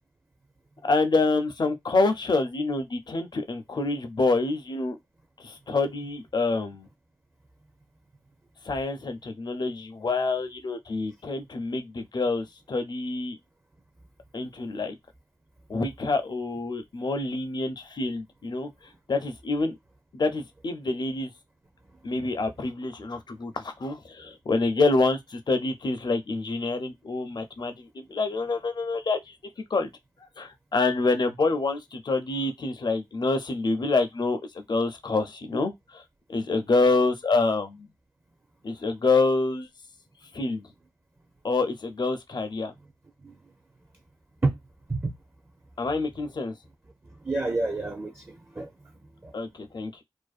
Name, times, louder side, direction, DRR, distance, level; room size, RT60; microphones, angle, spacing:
voice 1, 0.8-5.0 5.4-6.9 8.6-13.4 14.3-15.0 15.7-18.7 19.1-19.8 20.1-21.3 22.0-29.4 29.7-29.9 30.4-36.0 36.3-37.9 38.6-39.7 40.3-40.6 41.4-42.7 45.8-46.5 49.3-50.0, left 3 dB, 55° left, 0.5 m, -27 dB
voice 2, 47.2-48.7 49.2-49.3, right 3 dB, 25° right, 0.5 m, -28 dB
2.5 x 2.2 x 2.4 m
wide cardioid pair, 60°, 9 cm